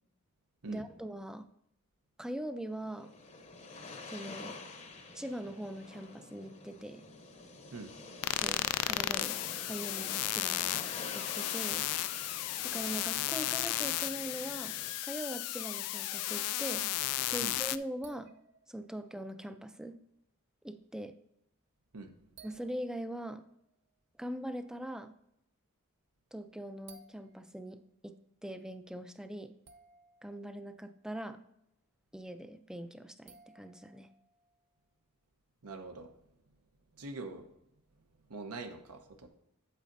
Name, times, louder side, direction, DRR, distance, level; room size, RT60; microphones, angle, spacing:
voice 1, 0.7-1.5 2.2-3.1 4.1-4.5 5.1-7.0 8.3-9.4 9.6-11.8 12.6-14.8 15.0-16.9 17.3-18.3 18.7-20.0 20.6-21.1 22.4-23.4 24.2-25.1 26.3-28.2 28.4-29.5 30.2-31.4 32.1-34.1, right 1 dB, 5° right, 10 dB, 0.4 m, -42 dB
sound 1, 2.7-14.9, left 3 dB, 30° left, 0.7 m, -48 dB
sound 2, 8.2-17.8, left 15 dB, 80° left, 0.3 m, -34 dB
sound 3, 18.0-19.3 22.4-24.0 26.1-26.2 26.9-27.7 29.6-31.0 33.3-34.8, right 4 dB, 50° right, 0.7 m, -60 dB
voice 2, 35.6-36.1 37.0-37.5 38.3-39.3, right 3 dB, 85° right, 5 dB, 1.0 m, -43 dB
8.4 x 8.2 x 2.6 m, 0.79 s
head